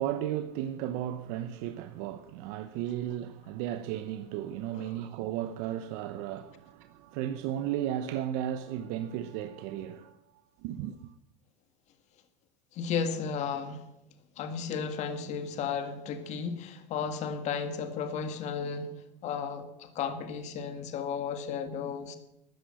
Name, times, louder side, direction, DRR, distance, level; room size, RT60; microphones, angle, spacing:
voice 1, 0.0-10.2 10.6-11.1, right 11 dB, 65° right, 0.9 m, -34 dB
voice 2, 12.7-13.8 14.4-18.9 19.2-22.2, left 6 dB, 45° left, 1.8 m, -34 dB
13.5 x 10.0 x 7.7 m
supercardioid pair, 120°, 16 cm